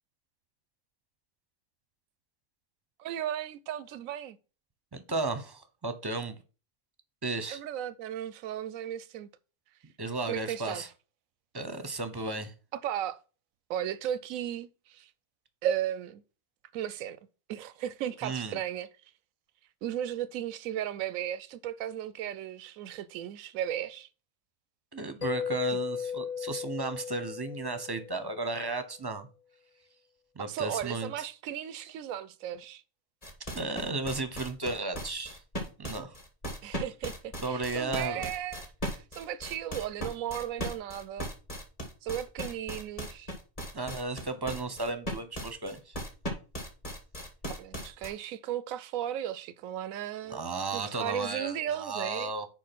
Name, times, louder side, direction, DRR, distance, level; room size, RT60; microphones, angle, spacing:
voice 1, 3.0-4.4 7.5-9.3 10.3-10.8 12.7-13.2 13.7-15.1 15.6-16.2 16.7-17.2 17.5-18.9 19.8-24.1 30.4-32.8 36.6-41.3 42.0-43.3 47.5-50.4 50.7-52.3, right 10 dB, 90° right, 1.0 m, -35 dB
voice 2, 4.9-6.4 7.2-7.6 10.0-10.9 11.5-12.5 18.2-18.6 24.9-29.3 30.3-31.3 33.5-35.4 35.8-36.2 36.7-36.8 37.4-38.3 43.7-46.0 50.2-52.5, right 3 dB, 20° right, 0.8 m, -34 dB
Mallet percussion, 25.2-28.7, left 7 dB, 60° left, 0.4 m, -36 dB
sound 1, 33.2-48.1, equal, 25° left, 2.1 m, -37 dB
6.7 x 5.2 x 6.1 m
omnidirectional pair, 1.4 m